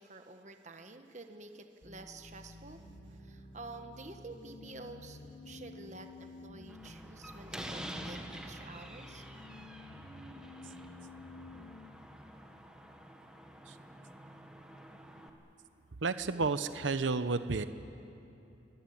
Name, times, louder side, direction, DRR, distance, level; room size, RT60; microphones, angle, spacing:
voice 1, 0.0-2.8 3.2-5.2 5.4-9.2, right 3 dB, 40° right, 6 dB, 1.4 m, -49 dB
sound 1, 1.8-11.8, left 2 dB, 25° left, 5.3 m, -51 dB
Slam, 6.7-15.3, right 1 dB, 5° right, 1.6 m, -48 dB
voice 2, 16.0-17.7, right 4 dB, 90° right, 11 dB, 0.8 m, -31 dB
24.0 x 20.0 x 9.4 m, 2.8 s
head